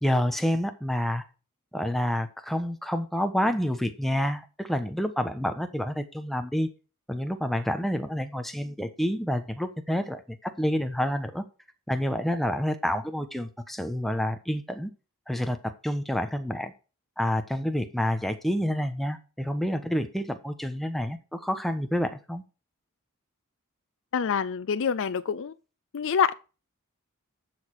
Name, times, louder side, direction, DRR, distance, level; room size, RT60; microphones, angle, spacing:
voice 1, 0.0-1.2 1.7-6.7 7.1-11.4 11.9-14.9 15.3-16.7 17.2-22.4, equal, ahead, 1.2 m, -28 dB
voice 2, 24.1-25.5 25.9-26.3, left 6 dB, 60° left, 0.5 m, -26 dB
12.0 x 6.6 x 4.8 m
head